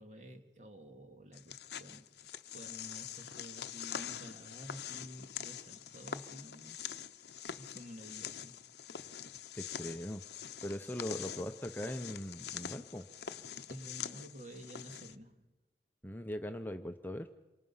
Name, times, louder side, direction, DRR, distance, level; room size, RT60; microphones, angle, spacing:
voice 1, 0.0-6.9 7.6-8.7 13.7-15.4, equal, 40° right, 5 dB, 2.1 m, -51 dB
sound 1, 1.3-15.1, left 9 dB, 75° left, 0.8 m, -45 dB
voice 2, 9.6-10.2 10.6-13.1 16.0-17.3, equal, 10° left, 7 dB, 0.7 m, -40 dB
28.0 x 24.0 x 5.6 m, 1.1 s
head